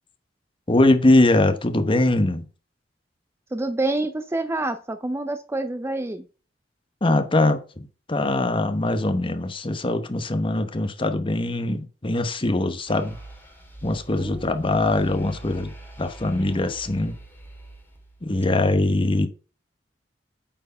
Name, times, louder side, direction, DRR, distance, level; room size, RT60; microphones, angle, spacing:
voice 1, 0.7-2.4 7.0-13.2 13.8-15.7 16.0-17.1 18.2-19.3, left 2 dB, 30° left, 0.9 m, -22 dB
voice 2, 3.5-6.2 14.2-14.5, right 2 dB, 15° right, 0.5 m, -27 dB
sound 1, 12.9-18.4, right 2 dB, 10° left, 1.8 m, -43 dB
8.9 x 4.6 x 5.4 m
head